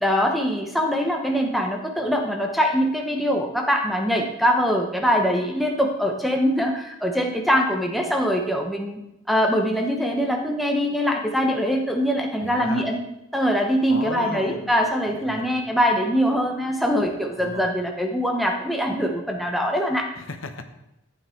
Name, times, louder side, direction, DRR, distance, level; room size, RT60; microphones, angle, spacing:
voice 1, 0.0-9.0 9.3-13.0 13.3-20.0, equal, ahead, 2 dB, 1.1 m, -23 dB
voice 2, 12.4-12.8 13.9-14.7 15.1-15.6 17.4-17.6 20.2-20.6, left 3 dB, 65° left, 7 dB, 1.2 m, -35 dB
14.5 x 8.8 x 4.6 m, 0.88 s
head